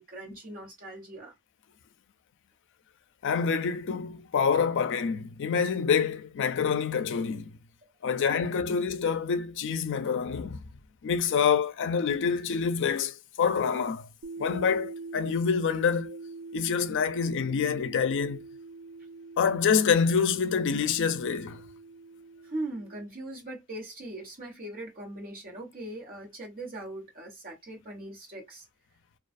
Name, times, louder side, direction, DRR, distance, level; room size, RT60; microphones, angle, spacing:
voice 1, 0.0-1.3 7.8-7.9 22.4-28.7, right 1 dB, 40° right, 1.2 m, -40 dB
voice 2, 3.2-7.6 8.0-10.6 11.0-14.1 14.4-16.2 16.5-18.5 19.4-21.6, left 6 dB, 55° left, 0.4 m, -26 dB
sound 1, 14.2-23.1, right 3 dB, 60° right, 0.3 m, -44 dB
2.3 x 2.3 x 2.4 m
head